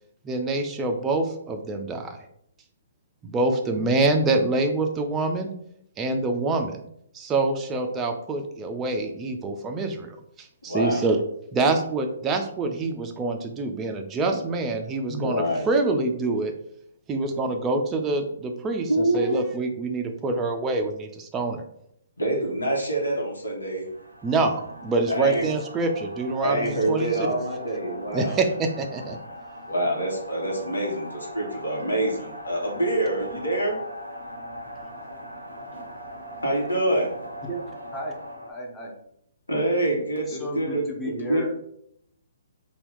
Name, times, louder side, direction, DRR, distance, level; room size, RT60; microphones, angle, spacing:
voice 1, 0.2-2.2 3.2-5.5 6.0-6.8 7.1-11.2 11.5-16.5 17.1-21.6 24.2-27.1 28.1-29.2, right 3 dB, 15° right, 4 dB, 0.4 m, -26 dB
voice 2, 10.6-11.0 14.2-14.4 15.1-15.7 18.9-19.4 22.2-23.8 25.1-25.4 26.4-28.4 29.7-33.7 36.4-37.1 39.5-40.8 41.3-41.5, right 1 dB, 85° left, -1 dB, 1.0 m, -26 dB
sound 1, 23.9-38.5, equal, 85° right, 0.6 m, -40 dB
voice 3, 38.5-39.0 40.3-41.5, right 1 dB, 10° left, -2 dB, 0.7 m, -33 dB
2.9 x 2.3 x 3.4 m, 0.72 s
figure-of-eight pair, 130°, 0 cm